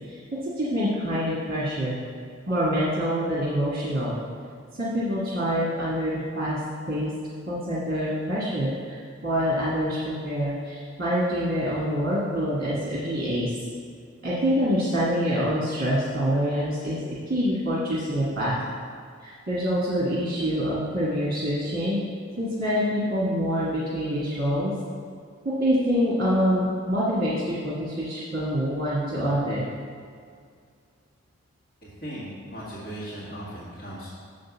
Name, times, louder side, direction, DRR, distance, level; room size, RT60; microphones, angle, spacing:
voice 1, 0.6-2.0 2.5-4.2 4.8-6.6 6.9-7.1 7.5-13.5 14.2-17.0 17.3-18.6 19.2-22.0 22.4-24.7 25.4-29.7, equal, 45° right, -7 dB, 1.5 m, -26 dB
voice 2, 31.8-34.1, equal, 45° left, -11 dB, 1.9 m, -37 dB
6.9 x 5.1 x 7.1 m, 2.2 s
head